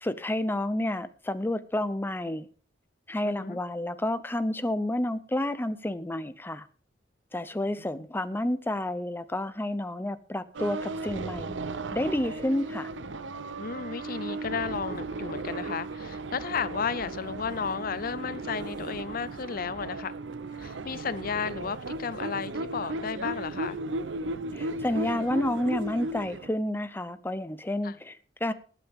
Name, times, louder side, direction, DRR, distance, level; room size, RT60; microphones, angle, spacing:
voice 1, 0.0-2.5 3.1-6.7 7.3-11.6 11.9-12.9 24.5-28.5, left 1 dB, 10° left, 0.7 m, -30 dB
voice 2, 3.2-3.6 13.6-20.1 20.6-23.8 27.8-28.0, left 6 dB, 55° left, 0.6 m, -33 dB
sound 1, 10.5-26.5, right 2 dB, 85° right, 0.8 m, -36 dB
20.0 x 8.9 x 3.6 m
head